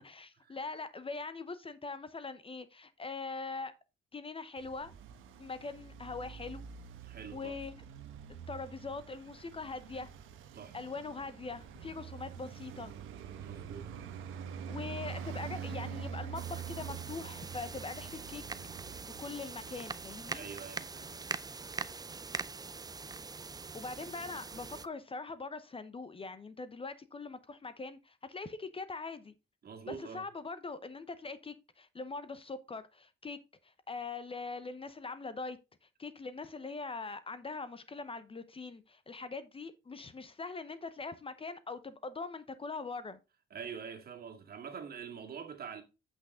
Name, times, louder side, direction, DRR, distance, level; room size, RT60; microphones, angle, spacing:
voice 1, 0.0-3.7 4.1-4.9 5.4-6.6 7.3-7.8 8.5-10.1 10.7-12.9 14.7-18.4 19.2-20.5 23.7-29.3 29.9-33.4 33.6-35.6 36.0-43.2, left 4 dB, 30° left, 0.8 m, -42 dB
Traffic noise roadway noise, 4.6-20.0, right 7 dB, 90° right, 1.2 m, -45 dB
voice 2, 7.1-7.6 10.5-10.8 13.4-13.9 20.3-21.3 29.6-30.2 43.5-45.8, right 6 dB, 50° right, 2.0 m, -45 dB
sound 1, 16.3-24.9, right 4 dB, 20° right, 0.5 m, -43 dB
8.1 x 6.1 x 3.6 m
cardioid pair, 90°, 20 cm